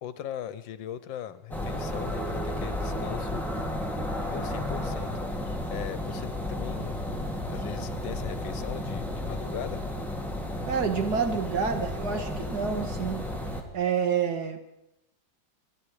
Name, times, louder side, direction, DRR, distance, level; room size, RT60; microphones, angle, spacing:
voice 1, 0.0-3.4 4.2-5.1 5.7-7.0 7.5-9.8, left 10 dB, 85° left, 14 dB, 1.6 m, -39 dB
sound 1, 1.5-13.6, left 1 dB, ahead, 1.7 m, -33 dB
voice 2, 10.7-13.3 13.7-14.6, right 6 dB, 60° right, 6 dB, 2.0 m, -28 dB
24.5 x 11.5 x 4.9 m, 0.87 s
omnidirectional pair, 2.0 m